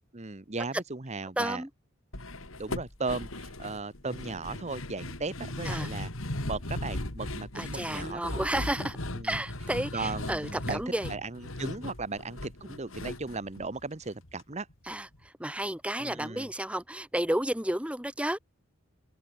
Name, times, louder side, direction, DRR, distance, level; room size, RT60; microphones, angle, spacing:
voice 1, 0.1-1.6 2.6-6.1 6.5-8.4 9.1-9.4 9.9-10.8 11.1-14.7 16.0-16.5, right 3 dB, 35° right, 1.1 m, -36 dB
voice 2, 1.4-1.7 5.6-5.9 7.5-9.0 9.2-11.1 14.8-18.4, right 1 dB, 5° right, 2.5 m, -32 dB
sound 1, 2.1-14.4 14.7-14.8 15.1-15.3, left 1 dB, 80° left, 3.9 m, -38 dB
open air
head